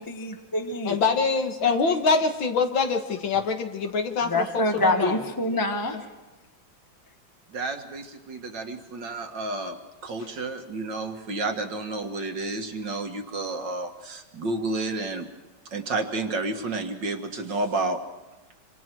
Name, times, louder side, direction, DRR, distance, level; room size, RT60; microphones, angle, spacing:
voice 1, 0.0-1.0 4.2-6.0, left 2 dB, 10° left, 4 dB, 1.2 m, -26 dB
voice 2, 0.9-5.2 5.9-6.0, left 4 dB, 75° left, 5 dB, 2.3 m, -24 dB
voice 3, 7.5-9.8 10.0-15.3 15.7-18.0, right 2 dB, 65° right, 6 dB, 2.3 m, -31 dB
26.5 x 25.5 x 4.6 m, 1.2 s
omnidirectional pair, 2.2 m